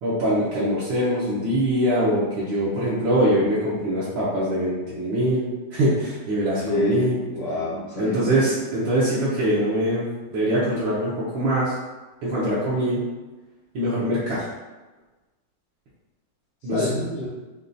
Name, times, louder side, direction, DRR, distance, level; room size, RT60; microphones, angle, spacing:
voice 1, 0.0-7.2 8.0-11.7 12.2-13.1 13.7-14.4 16.6-16.9, right 1 dB, 70° right, -9 dB, 1.6 m, -23 dB
voice 2, 6.6-8.4 16.7-17.3, left 1 dB, 40° left, -6 dB, 0.6 m, -27 dB
6.5 x 2.4 x 2.6 m, 1.2 s
omnidirectional pair, 2.3 m